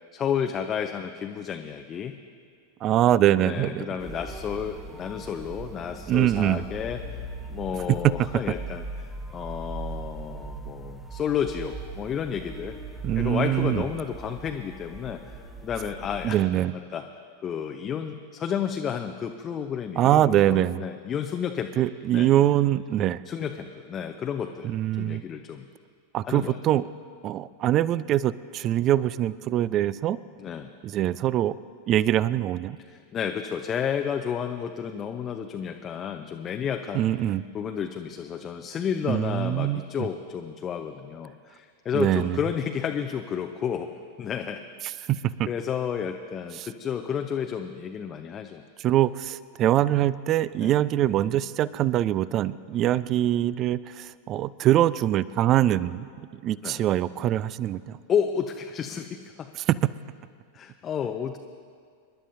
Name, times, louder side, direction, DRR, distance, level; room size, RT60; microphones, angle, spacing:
voice 1, 0.1-2.1 3.4-7.0 7.5-12.8 13.2-15.4 15.6-16.4 16.9-17.1 17.4-21.8 22.1-22.3 23.3-24.7 25.0-25.6 26.3-26.6 30.4-30.7 32.9-37.1 37.5-43.9 44.2-44.6 45.0-45.1 45.5-48.6 50.6-50.7 52.7-52.9 56.6-56.8 58.1-59.5 60.5-61.4, left 8 dB, 25° left, 5 dB, 0.6 m, -31 dB
voice 2, 2.8-3.9 6.1-6.6 8.5-8.6 13.0-13.9 16.2-16.7 20.0-20.9 21.8-23.2 24.6-25.2 26.1-26.9 27.2-30.2 30.8-31.5 31.9-32.8 36.9-37.4 39.1-40.1 41.9-42.4 45.4-45.5 46.6-46.7 48.8-56.1 56.4-58.0 59.6-59.8, right 12 dB, 35° right, 19 dB, 0.3 m, -23 dB
sound 1, 4.0-16.3, right 2 dB, 5° right, 0.9 m, -39 dB
27.5 x 11.5 x 2.7 m, 2.1 s
figure-of-eight pair, 90°, 0 cm